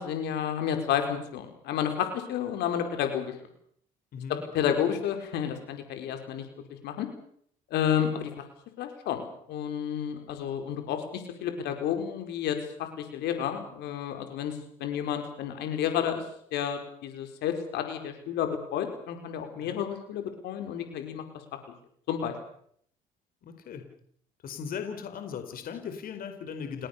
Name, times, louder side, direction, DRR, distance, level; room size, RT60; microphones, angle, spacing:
voice 1, 0.0-3.4 4.3-7.1 7.7-8.4 8.8-9.2 9.5-16.2 16.5-21.2 22.1-22.3, left 9 dB, 80° left, 6 dB, 5.0 m, -31 dB
voice 2, 4.1-4.4 19.6-19.8 23.4-23.9 24.4-26.9, left 7 dB, 60° left, 7 dB, 4.6 m, -38 dB
29.5 x 18.0 x 6.9 m, 0.65 s
cardioid pair, 110°, 17 cm